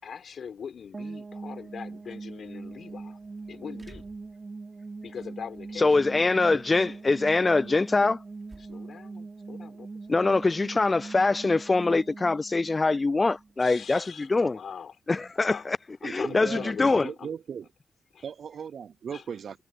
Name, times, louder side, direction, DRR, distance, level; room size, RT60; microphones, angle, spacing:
voice 1, 0.0-3.2 3.5-4.1 5.0-7.0 7.5-8.1 8.6-9.9 13.6-15.0 15.3-15.7 16.0-17.3 18.1-18.3 19.1-19.2, left 7 dB, 70° left, 4.8 m, -42 dB
sound 1, 0.9-13.8, right 3 dB, 40° right, 2.5 m, -42 dB
sound 2, 1.2-16.5, right 2 dB, 25° right, 5.9 m, -62 dB
voice 2, 5.8-8.2 10.1-14.6 15.1-15.8 16.0-17.0, left 3 dB, 30° left, 0.3 m, -23 dB
voice 3, 16.0-16.8 17.0-17.7 18.2-19.6, right 7 dB, 70° right, 0.4 m, -37 dB
cardioid pair, 75°, 0 cm